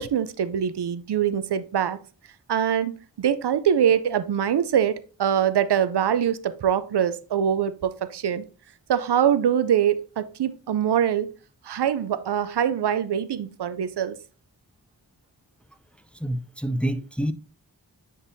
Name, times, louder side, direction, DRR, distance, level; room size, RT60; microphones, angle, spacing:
voice 1, 0.0-2.0 2.5-8.4 8.9-11.3 11.6-14.2, right 9 dB, 85° right, 0.5 m, -23 dB
voice 2, 16.2-17.3, right 1 dB, 5° left, 0.4 m, -27 dB
9.6 x 3.9 x 2.7 m
wide cardioid pair, 40°, 39 cm